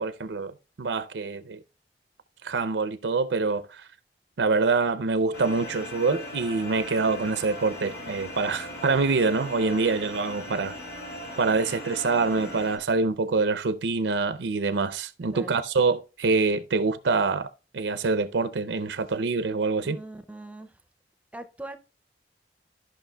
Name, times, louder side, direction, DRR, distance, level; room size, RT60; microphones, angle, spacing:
voice 1, 0.0-1.6 2.4-3.9 4.4-10.8 11.4-17.5 17.7-20.0, right 4 dB, 90° right, 0.5 m, -25 dB
sound 1, 5.3-12.8, left 1 dB, 65° left, 3.1 m, -39 dB
voice 2, 19.8-20.8 21.3-21.8, right 1 dB, 10° right, 0.4 m, -41 dB
14.0 x 5.4 x 2.2 m
head